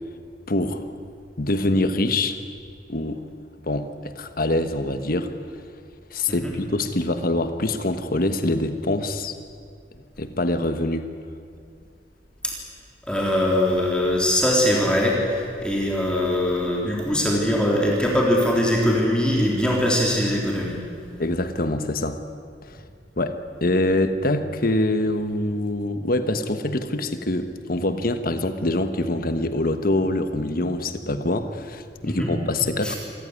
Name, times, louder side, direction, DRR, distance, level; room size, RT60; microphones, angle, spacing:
voice 1, 0.5-0.8 1.4-2.4 2.9-3.2 3.6-5.3 6.1-9.4 10.2-11.1 21.2-22.2 23.2-33.0, left 2 dB, 55° left, 9 dB, 1.4 m, -24 dB
voice 2, 13.1-20.8 32.0-32.3 32.8-33.0, left 1 dB, 5° left, -2 dB, 3.6 m, -22 dB
26.0 x 15.0 x 9.9 m, 2.3 s
head